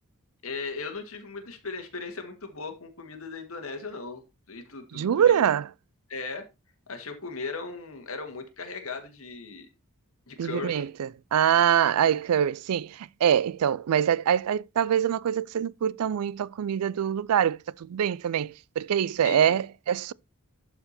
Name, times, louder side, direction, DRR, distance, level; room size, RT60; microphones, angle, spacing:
voice 1, 0.4-4.2 4.5-5.4 6.1-6.4 6.9-9.7 10.3-10.9 19.2-19.6, left 4 dB, 65° left, 1.9 m, -37 dB
voice 2, 4.9-5.7 10.4-20.1, right 9 dB, 85° right, 0.4 m, -24 dB
11.5 x 4.9 x 4.2 m
head